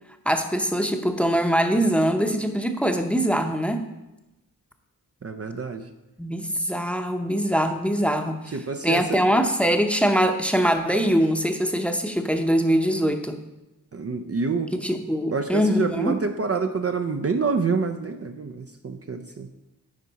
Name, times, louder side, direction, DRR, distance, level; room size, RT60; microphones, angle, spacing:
voice 1, 0.3-3.9 6.2-13.4 14.8-16.2, equal, 5° left, 5 dB, 0.8 m, -23 dB
voice 2, 5.2-5.9 8.5-9.2 13.9-14.7 15.3-19.5, right 4 dB, 40° right, 6 dB, 0.6 m, -27 dB
10.0 x 4.6 x 4.1 m, 0.98 s
cardioid pair, 50°, 36 cm